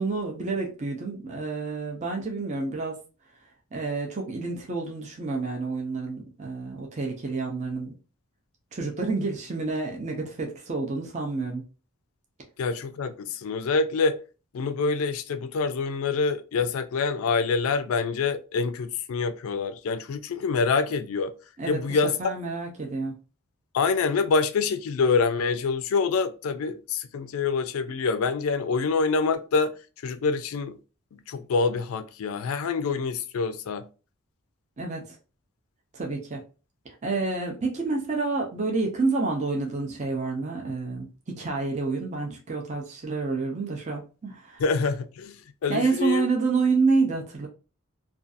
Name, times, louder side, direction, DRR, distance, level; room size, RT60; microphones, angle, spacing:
voice 1, 0.0-3.0 3.7-7.9 8.7-11.6 21.6-23.2 34.8-35.0 35.9-36.4 37.0-44.6 45.7-47.5, right 3 dB, 35° right, 0.6 m, -28 dB
voice 2, 12.6-14.1 14.5-21.3 21.7-22.1 23.7-29.7 30.0-30.8 31.3-33.9 44.6-45.4 45.6-46.3, left 4 dB, 80° left, 0.4 m, -26 dB
2.5 x 2.3 x 2.4 m
head